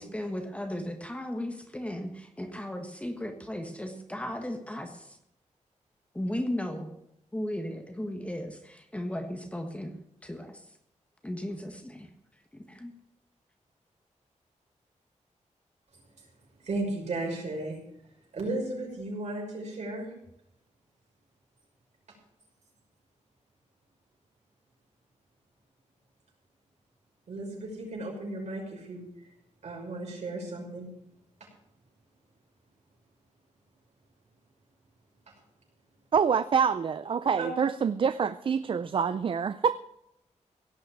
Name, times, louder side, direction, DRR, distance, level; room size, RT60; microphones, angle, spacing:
voice 1, 0.0-5.2 6.1-6.9 7.3-10.0 10.2-10.6 11.2-12.1 12.5-12.9, left 1 dB, 10° left, 5 dB, 1.4 m, -36 dB
voice 2, 16.6-17.8 18.3-20.1 27.3-29.0 29.6-30.9 37.4-37.5, right 2 dB, 65° right, -2 dB, 5.9 m, -35 dB
voice 3, 36.1-39.8, right 6 dB, 45° right, 13 dB, 0.4 m, -26 dB
17.0 x 6.3 x 9.1 m, 0.80 s
wide cardioid pair, 175°, 13 cm